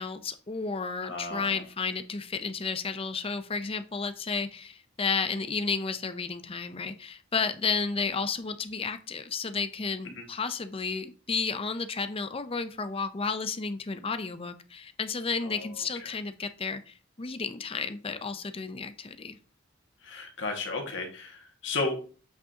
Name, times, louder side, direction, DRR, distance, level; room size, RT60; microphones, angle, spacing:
voice 1, 0.0-19.4, left 5 dB, 30° left, 10 dB, 0.6 m, -32 dB
voice 2, 1.0-1.6 10.2-10.3 15.4-15.7 16.0-16.1 20.0-22.0, left 3 dB, 60° left, 2 dB, 1.9 m, -34 dB
8.1 x 6.0 x 2.9 m, 0.37 s
head